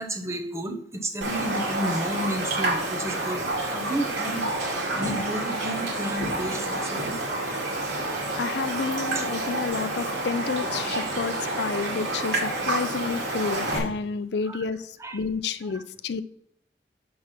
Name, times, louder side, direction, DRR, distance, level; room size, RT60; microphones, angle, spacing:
voice 1, 0.0-7.2 9.1-9.3 14.5-14.6 15.0-15.2 15.7-15.8, right 1 dB, 15° right, 5 dB, 0.8 m, -32 dB
Raindrop, 1.2-13.8, right 2 dB, 85° right, 2.4 m, -29 dB
voice 2, 8.0-16.2, left 5 dB, 65° left, 14 dB, 0.4 m, -30 dB
6.3 x 4.7 x 5.8 m, 0.67 s
head